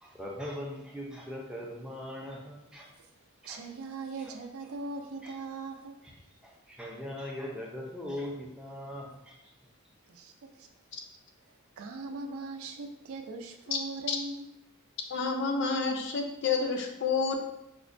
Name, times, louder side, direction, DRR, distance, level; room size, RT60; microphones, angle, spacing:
voice 1, 0.0-2.9 3.4-3.6 4.2-4.3 5.2-5.3 6.0-9.4, left 1 dB, 5° right, -2 dB, 0.4 m, -40 dB
voice 2, 3.4-6.0 10.1-10.7 11.8-14.5, right 3 dB, 75° right, 4 dB, 0.4 m, -40 dB
voice 3, 15.1-17.4, left 4 dB, 55° left, 4 dB, 0.4 m, -29 dB
4.9 x 2.1 x 2.5 m, 0.87 s
head